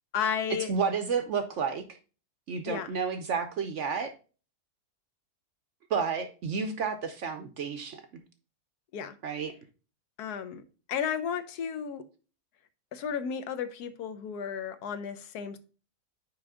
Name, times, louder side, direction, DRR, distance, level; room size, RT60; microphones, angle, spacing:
voice 1, 0.1-0.7 2.7-2.9 8.9-9.1 10.2-10.6 10.9-12.0 12.9-15.6, left 7 dB, 80° left, 1.2 m, -33 dB
voice 2, 0.7-2.0 2.5-4.1 5.9-8.0 9.2-9.5, right 6 dB, 60° right, 0.8 m, -31 dB
5.9 x 4.7 x 3.6 m
omnidirectional pair, 1.7 m